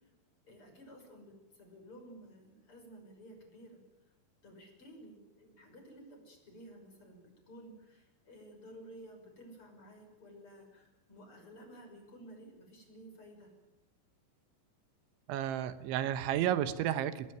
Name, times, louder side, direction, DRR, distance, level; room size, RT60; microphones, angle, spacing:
voice 1, 0.4-3.8 4.4-13.5, right 1 dB, 30° left, 3 dB, 6.4 m, -54 dB
voice 2, 15.3-17.3, right 11 dB, 85° right, 13 dB, 3.4 m, -32 dB
27.0 x 20.0 x 9.4 m, 0.95 s
omnidirectional pair, 5.3 m